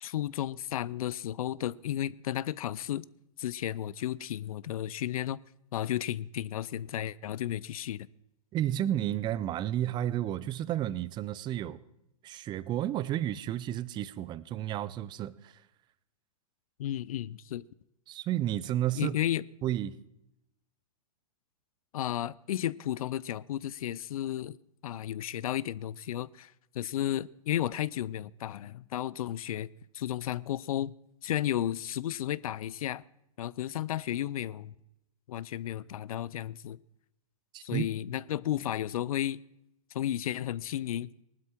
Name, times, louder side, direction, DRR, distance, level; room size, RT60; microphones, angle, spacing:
voice 1, 0.0-3.0 3.4-5.4 5.7-8.1 16.8-17.6 19.0-19.4 21.9-24.6 24.8-30.9 31.2-33.0 33.4-34.7 35.3-36.8 37.6-39.4 39.9-41.1, left 12 dB, 70° left, 0.5 m, -33 dB
voice 2, 8.5-11.8 12.2-15.5 18.1-19.2 19.6-20.0 37.5-37.9, right 12 dB, 25° right, 0.6 m, -32 dB
19.0 x 12.0 x 4.4 m
hypercardioid pair, 125°, 19 cm